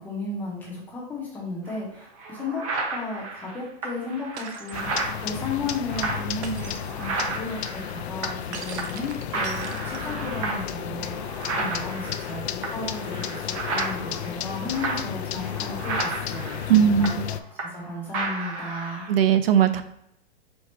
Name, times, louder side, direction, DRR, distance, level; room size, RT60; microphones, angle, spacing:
voice 1, 0.0-2.6 2.9-19.1, left 3 dB, 5° left, -4 dB, 0.6 m, -34 dB
sound 1, 1.7-1.8 2.2-8.5 8.8-9.1 9.3-17.9 18.1-19.2, right 3 dB, 30° right, 0.8 m, -33 dB
Shatter, 4.4-4.8 6.4-6.9 8.5-10.2, right 5 dB, 90° right, 0.8 m, -40 dB
sound 2, 4.7-17.4, left 10 dB, 80° left, 0.5 m, -33 dB
voice 2, 16.7-17.3 19.1-19.8, right 8 dB, 60° right, 10 dB, 0.5 m, -19 dB
4.4 x 2.4 x 4.2 m, 0.74 s
hypercardioid pair, 160°, 32 cm